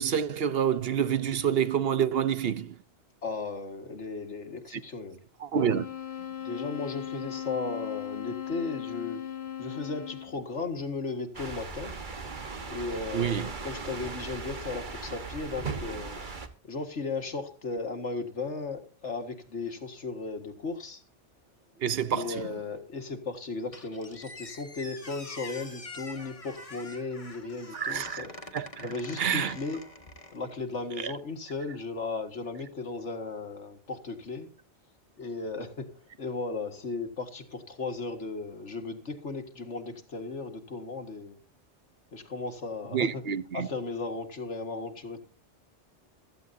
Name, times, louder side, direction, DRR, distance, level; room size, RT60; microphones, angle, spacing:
voice 1, 0.0-2.7 5.4-5.8 13.1-13.5 21.8-22.4 27.7-28.2 28.5-28.9 29.2-29.5 31.0-31.1 42.9-43.7, right 8 dB, 60° right, 1.0 m, -27 dB
voice 2, 3.2-5.2 6.4-9.2 9.6-12.0 12.7-16.2 16.6-21.0 22.1-28.3 28.8-29.8 30.3-34.5 35.2-41.4 42.1-43.2 43.5-45.2, left 3 dB, 80° left, 2.1 m, -36 dB
sound 1, 5.6-10.4, left 10 dB, 65° left, 1.2 m, -38 dB
sound 2, 11.3-16.5, right 4 dB, 45° right, 1.5 m, -38 dB
Squeak, 23.7-30.6, left 2 dB, 30° left, 1.8 m, -45 dB
15.5 x 14.0 x 2.7 m
omnidirectional pair, 1.2 m